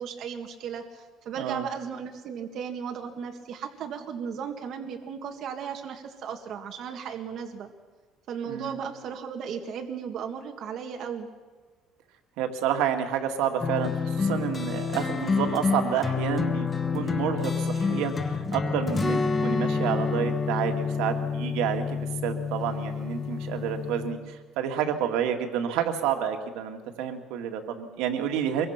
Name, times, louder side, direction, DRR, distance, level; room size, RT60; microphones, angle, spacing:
voice 1, 0.0-7.7 8.3-11.3, right 7 dB, 50° right, 3 dB, 1.9 m, -36 dB
voice 2, 8.5-8.8 12.4-16.7 16.9-28.7, right 9 dB, 90° right, 5 dB, 2.1 m, -29 dB
sound 1, 13.6-24.1, left 5 dB, 20° left, 1.3 m, -28 dB
24.5 x 22.5 x 5.9 m, 1.4 s
cardioid pair, 170°, 0 cm